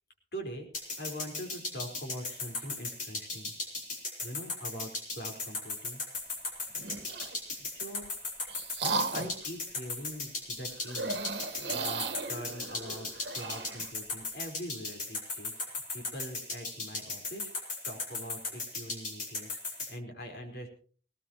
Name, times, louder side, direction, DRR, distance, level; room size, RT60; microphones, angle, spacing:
voice 1, 0.3-0.7 1.0-3.5 4.2-6.0 7.4-8.1 9.1-11.2 11.5-13.1 13.3-20.7, equal, 60° left, 2 dB, 4.6 m, -43 dB
sound 1, 0.7-19.9, left 3 dB, 45° left, 4.4 m, -36 dB
sound 2, 6.7-7.4 8.0-9.5 10.8-13.9, right 3 dB, 70° right, 1.5 m, -36 dB
19.0 x 18.5 x 3.0 m, 0.43 s
head